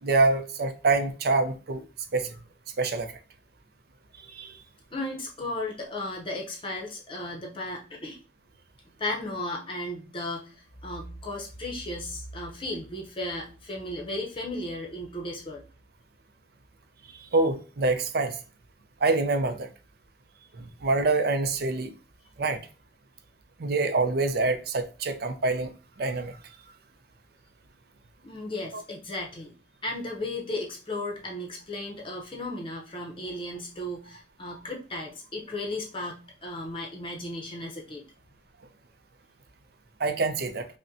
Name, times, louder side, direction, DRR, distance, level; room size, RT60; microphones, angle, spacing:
voice 1, 0.0-1.8 2.1-2.3 2.8-3.1 4.3-4.5 17.3-18.4 19.0-19.7 20.6-21.9 22.4-22.6 23.6-25.7 26.0-26.3 28.7-28.8 40.0-40.7, right 3 dB, 60° right, 0.5 m, -25 dB
voice 2, 4.9-8.2 9.0-15.6 28.2-29.5 29.8-38.0, left 1 dB, 30° left, 0.7 m, -35 dB
5.2 x 2.1 x 2.6 m
head